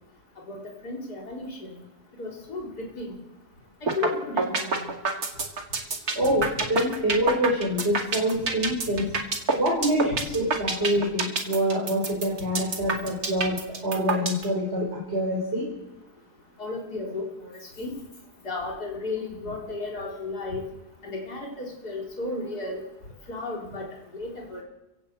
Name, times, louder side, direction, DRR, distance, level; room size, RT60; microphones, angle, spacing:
voice 1, 0.5-1.8 2.2-3.1 3.8-4.9 6.2-6.3 10.1-10.2 16.6-17.9 18.4-20.6 21.0-22.8 23.3-24.6, left 3 dB, 70° left, -1 dB, 4.5 m, -34 dB
sound 1, 3.9-4.1 4.4-14.4, right 3 dB, 65° right, 2.8 m, -26 dB
voice 2, 6.2-9.1 9.6-13.6 13.8-15.6, equal, 40° right, -3 dB, 5.4 m, -26 dB
29.5 x 16.5 x 8.2 m, 0.98 s
omnidirectional pair, 1.7 m